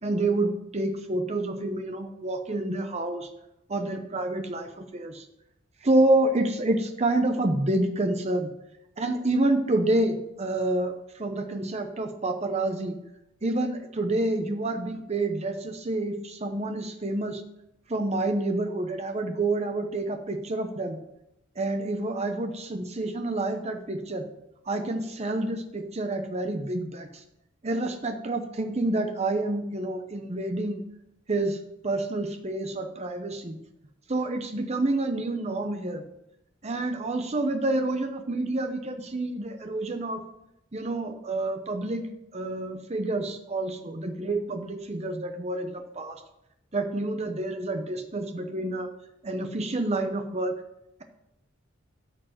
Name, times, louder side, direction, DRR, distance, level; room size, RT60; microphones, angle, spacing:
voice 1, 0.0-3.3 3.7-5.2 5.8-8.5 9.0-13.0 13.4-17.4 17.9-21.0 21.6-24.3 24.7-27.2 27.6-30.8 31.3-31.6 31.8-33.6 34.1-36.0 36.6-40.2 40.7-42.1 42.3-46.2 46.7-48.9 49.2-50.5, right 2 dB, 35° right, 6 dB, 0.8 m, -28 dB
13.0 x 4.7 x 7.6 m, 0.86 s
head